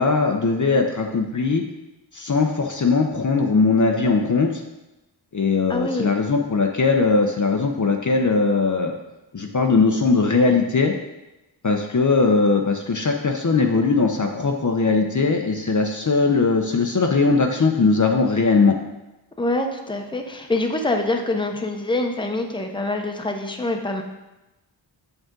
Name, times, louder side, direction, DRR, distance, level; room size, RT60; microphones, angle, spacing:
voice 1, 0.0-1.6 2.1-4.6 5.3-8.9 9.3-10.9 11.6-18.7, left 4 dB, 40° left, 2 dB, 0.7 m, -20 dB
voice 2, 5.7-6.1 19.4-24.0, left 2 dB, 10° left, 4 dB, 0.8 m, -25 dB
7.2 x 5.3 x 3.8 m, 1.0 s
cardioid pair, 50°, 46 cm